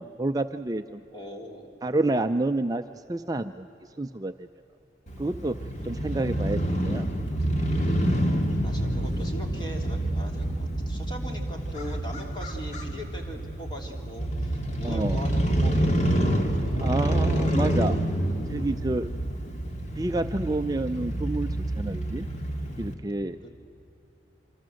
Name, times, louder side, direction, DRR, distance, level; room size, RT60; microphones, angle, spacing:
voice 1, 0.0-1.0 1.8-3.7 4.0-4.5 5.2-5.6 5.8-7.1 14.8-15.2 16.8-18.0 18.5-19.1 20.0-21.5 21.8-22.3 22.8-23.5, right 2 dB, 20° right, 8 dB, 0.5 m, -29 dB
voice 2, 1.1-1.6 8.5-16.3 23.4-23.5, equal, 25° left, 1 dB, 3.2 m, -40 dB
Crow / Motorcycle, 5.1-22.9, right 1 dB, 40° left, 2.2 m, -27 dB
27.0 x 25.0 x 7.7 m, 3.0 s
head